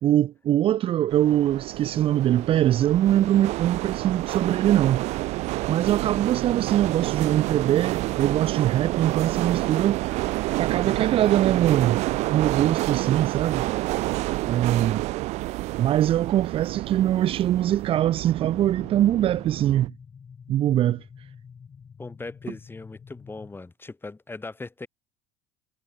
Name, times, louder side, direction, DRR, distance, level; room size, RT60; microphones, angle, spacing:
voice 1, 0.0-5.0 5.7-10.0 10.6-12.0 12.3-13.6 14.4-15.0 15.8-19.9 20.5-21.0, right 12 dB, 45° right, 0.7 m, -22 dB
sound 1, 1.1-19.9, right 19 dB, 65° right, 2.1 m, -29 dB
sound 2, 18.4-23.6, left 6 dB, 35° left, 7.0 m, -47 dB
voice 2, 22.0-24.9, left 3 dB, 15° left, 7.0 m, -39 dB
hypercardioid pair, 70°, 12 cm